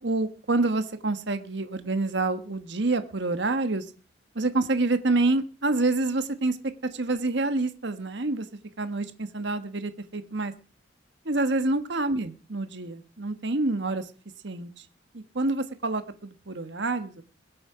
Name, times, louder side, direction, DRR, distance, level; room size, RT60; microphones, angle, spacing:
voice 1, 0.0-3.8 4.3-6.6 6.9-8.5 8.8-10.5 11.2-14.1 14.4-14.8 15.1-17.2, right 2 dB, 65° right, 9 dB, 1.4 m, -27 dB
21.5 x 8.6 x 5.0 m, 0.38 s
head